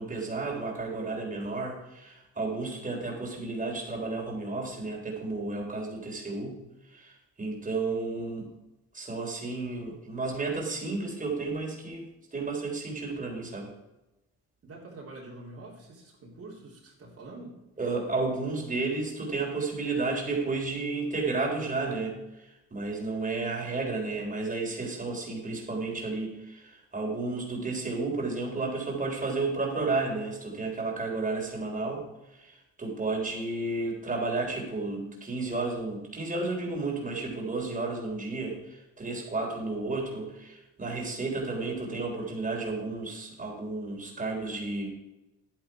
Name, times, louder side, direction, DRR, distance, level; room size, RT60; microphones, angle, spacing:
voice 1, 0.0-6.6 6.9-8.5 8.9-13.7 17.8-32.0 32.3-44.9, right 3 dB, 25° right, -1 dB, 3.7 m, -32 dB
voice 2, 14.6-17.6, right 2 dB, 55° right, -3 dB, 3.6 m, -46 dB
10.5 x 9.7 x 4.6 m, 0.97 s
cardioid pair, 90°, 30 cm